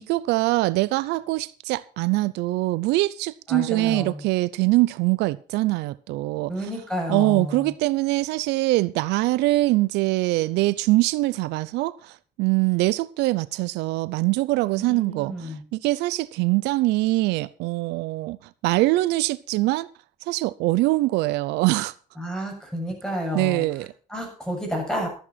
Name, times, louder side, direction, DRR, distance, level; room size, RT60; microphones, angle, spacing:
voice 1, 0.0-6.5 7.1-18.4 18.6-19.9 20.3-21.9 23.3-23.9, right 20 dB, 90° right, 0.6 m, -23 dB
voice 2, 3.5-4.3 6.5-7.7 14.8-15.6 22.2-23.6 24.1-25.1, equal, 5° left, 6.9 m, -30 dB
13.5 x 9.0 x 5.8 m
cardioid pair, 110°, 17 cm